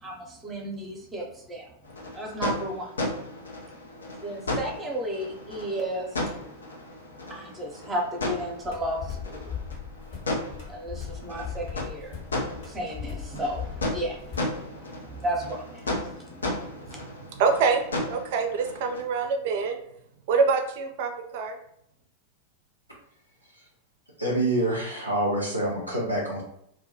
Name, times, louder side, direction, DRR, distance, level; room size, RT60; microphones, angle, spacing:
voice 1, 0.0-1.7 2.1-2.9 4.2-6.3 7.3-9.5 10.7-12.2 12.6-17.0, right 1 dB, 15° right, 0 dB, 0.6 m, -34 dB
sound 1, 1.8-19.0, left 2 dB, 70° left, 0.4 m, -35 dB
sound 2, 8.6-14.5, left 7 dB, 50° left, 1.0 m, -38 dB
voice 2, 17.1-17.8 18.1-19.8 20.3-21.6, right 5 dB, 50° right, 5 dB, 0.4 m, -25 dB
voice 3, 24.2-26.4, right 1 dB, 90° left, -4 dB, 0.8 m, -26 dB
2.3 x 2.2 x 2.7 m, 0.72 s
figure-of-eight pair, 90°, 0 cm